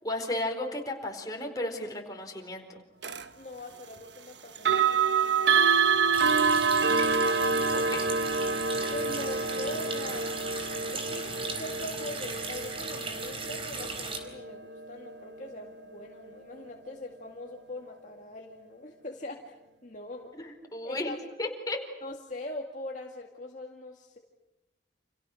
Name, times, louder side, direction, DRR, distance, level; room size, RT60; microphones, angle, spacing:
voice 1, 0.0-2.8 7.7-8.0 20.4-21.8, left 1 dB, 20° left, 2 dB, 4.6 m, -34 dB
sound 1, 3.0-3.2 4.5-15.4, right 5 dB, 80° right, 1.3 m, -27 dB
voice 2, 3.4-5.8 8.9-10.4 10.9-19.5 19.8-20.3 20.8-21.2 22.0-24.2, left 2 dB, 45° left, 1 dB, 2.1 m, -42 dB
Water tap faucet, 6.1-14.2, right 3 dB, 30° right, 3.9 m, -37 dB
30.0 x 28.0 x 6.4 m, 0.99 s
head